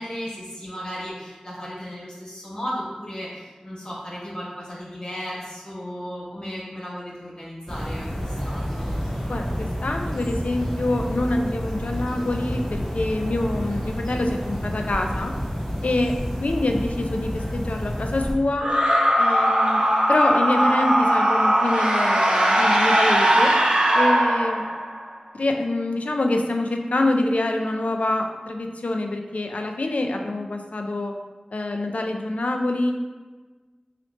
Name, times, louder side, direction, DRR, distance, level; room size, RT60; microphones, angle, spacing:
voice 1, 0.0-8.9, equal, 40° left, -7 dB, 0.9 m, -35 dB
sound 1, 7.7-18.3, equal, 10° left, 0.9 m, -29 dB
voice 2, 9.3-15.3 15.8-18.7 19.2-19.8 20.1-23.5 23.9-24.7 25.3-31.1 31.5-32.9, left 2 dB, 75° left, 3 dB, 0.3 m, -25 dB
sound 2, 18.6-25.0, right 1 dB, 55° right, 0.6 m, -19 dB
3.1 x 2.9 x 3.0 m, 1.3 s
wide cardioid pair, 45°, 2 cm